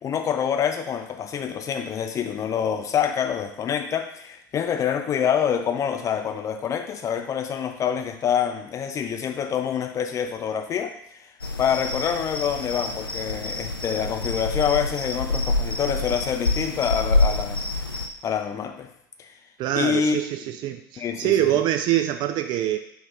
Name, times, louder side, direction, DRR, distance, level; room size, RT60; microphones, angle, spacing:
voice 1, 0.0-11.3 11.6-17.6 18.2-18.9 19.2-19.3 19.8-20.2 21.0-21.6, left 8 dB, 25° left, 6 dB, 0.5 m, -26 dB
sound 1, 11.4-18.1, left 2 dB, 90° left, 0.4 m, -27 dB
voice 2, 19.6-22.8, right 12 dB, 40° right, 7 dB, 0.4 m, -24 dB
4.0 x 2.6 x 4.5 m, 0.78 s
figure-of-eight pair, 75°, 12 cm